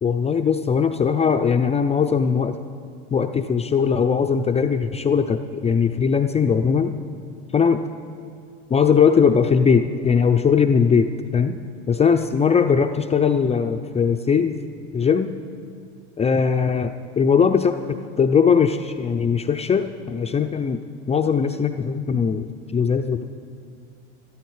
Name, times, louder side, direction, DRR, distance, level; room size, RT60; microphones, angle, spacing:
voice 1, 0.0-2.6 3.1-6.9 7.5-7.9 8.7-11.6 11.9-14.6 14.9-15.3 16.2-20.8 21.1-23.2, left 6 dB, 20° left, 6 dB, 0.5 m, -20 dB
13.0 x 13.0 x 4.8 m, 2.3 s
hypercardioid pair, 85°, 34 cm